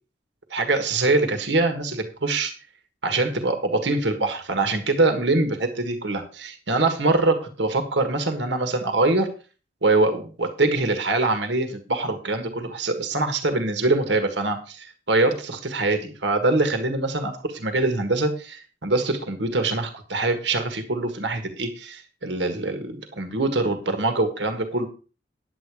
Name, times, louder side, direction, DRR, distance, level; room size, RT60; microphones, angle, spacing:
voice 1, 0.5-2.5 3.0-9.3 9.8-24.9, right 2 dB, 70° right, 7 dB, 1.6 m, -24 dB
9.9 x 8.6 x 4.8 m, 0.35 s
head